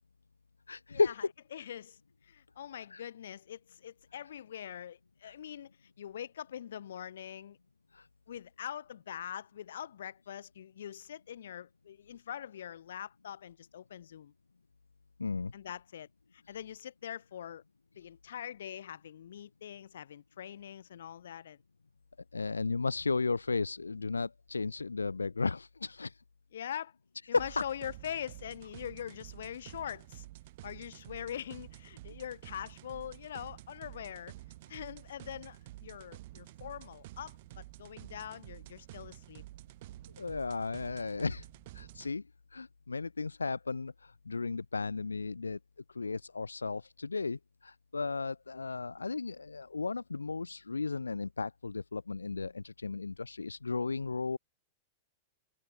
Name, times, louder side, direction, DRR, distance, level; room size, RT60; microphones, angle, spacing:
voice 1, 0.7-1.3 2.9-3.0 5.2-5.3 7.9-8.1 15.2-15.5 22.3-26.2 27.3-27.6 40.2-41.5 41.7-42.2 42.5-45.6 45.9-54.4, left 4 dB, 90° left, 0.4 m, -34 dB
voice 2, 1.5-7.6 8.3-14.3 15.5-16.1 16.3-17.6 18.0-21.6 26.5-26.9 27.3-30.3 30.6-34.4 34.7-39.4, left 10 dB, 70° left, 3.6 m, -43 dB
sound 1, 27.4-42.1, right 17 dB, 55° right, 7.0 m, -50 dB
hypercardioid pair, 105°, 0 cm